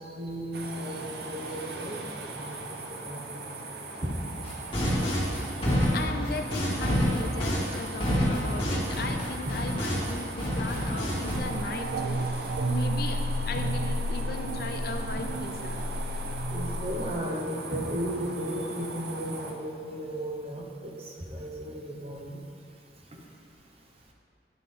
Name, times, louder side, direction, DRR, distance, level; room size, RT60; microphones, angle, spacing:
voice 1, 0.0-2.6 2.9-4.2 5.7-5.8 7.5-8.0 9.4-9.6 13.5-13.6 16.5-22.4 23.1-23.2, equal, 35° right, 0 dB, 0.9 m, -35 dB
sound 1, 0.5-19.5, right 3 dB, 60° right, 0.7 m, -40 dB
sound 2, 4.4-10.1 10.4-11.4, equal, 30° left, 1.7 m, -28 dB
voice 2, 5.9-15.8, left 3 dB, 60° left, 5 dB, 0.5 m, -37 dB
sound 3, 11.3-17.1, equal, 85° right, 0.4 m, -31 dB
9.9 x 5.8 x 3.6 m, 2.5 s
head